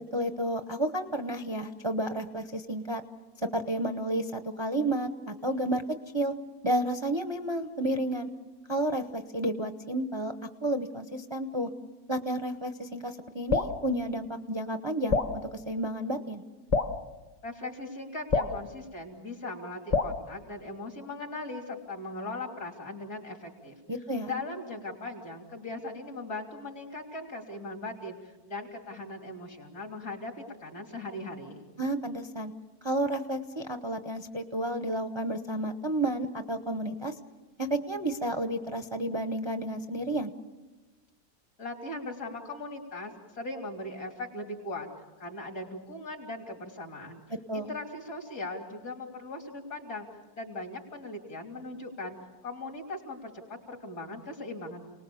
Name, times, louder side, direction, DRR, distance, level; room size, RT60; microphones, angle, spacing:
voice 1, 0.1-3.0 3.4-5.8 6.1-6.3 6.6-8.3 8.7-10.3 10.6-11.7 12.1-16.4 23.9-24.3 31.8-32.5 32.8-37.1 37.6-40.3 47.5-47.7, right 1 dB, 25° right, 7 dB, 0.6 m, -31 dB
Drip, 13.5-13.8 15.1-15.4 16.7-17.0 18.3-18.6 19.9-20.2, left 4 dB, 30° left, 1.0 m, -26 dB
voice 2, 17.4-23.8 24.3-30.3 30.6-31.7 41.6-44.9 45.2-47.2 47.5-50.1 50.3-52.2 52.4-54.8, left 2 dB, 65° left, 2 dB, 3.7 m, -39 dB
29.5 x 19.5 x 7.0 m, 1.2 s
omnidirectional pair, 1.6 m